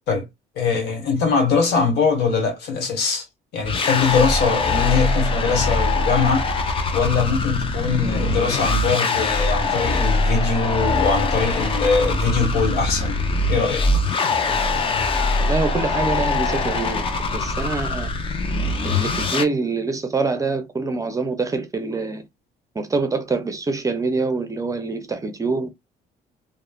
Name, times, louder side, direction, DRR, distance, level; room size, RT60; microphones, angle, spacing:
voice 1, 0.6-3.3 3.5-6.5 6.9-13.2 13.5-13.8, left 5 dB, 75° left, 1.2 m, -21 dB
sound 1, 3.6-19.4, left 3 dB, 30° left, 0.5 m, -22 dB
voice 2, 14.5-14.8 15.1-18.1 18.8-22.2 22.7-25.7, right 3 dB, 20° right, 0.5 m, -25 dB
3.0 x 2.0 x 2.2 m
cardioid pair, 110°, 17 cm